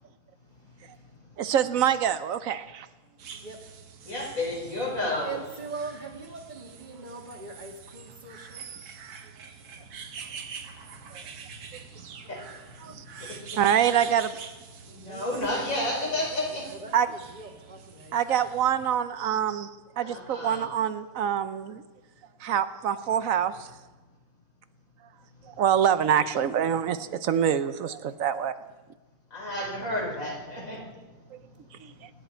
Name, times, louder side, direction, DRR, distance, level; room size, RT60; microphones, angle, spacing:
voice 1, 1.4-2.9 11.1-11.2 12.8-13.0 13.6-14.5 16.9-17.1 18.1-21.8 22.4-23.6 25.4-28.6 31.3-31.4 31.7-32.1, right 9 dB, 70° right, 13 dB, 1.1 m, -26 dB
sound 1, 3.2-18.9, right 6 dB, 85° right, 1.6 m, -45 dB
voice 2, 3.4-3.7 5.2-8.7 9.1-9.2 15.1-18.2, right 4 dB, 30° right, 2 dB, 2.0 m, -42 dB
voice 3, 4.0-5.4 12.3-12.4 12.8-12.9 13.2-13.6 14.9-16.7 20.0-20.6 29.3-30.8, left 1 dB, 60° left, -3 dB, 5.0 m, -31 dB
25.5 x 11.0 x 4.4 m, 1.2 s
omnidirectional pair, 1.6 m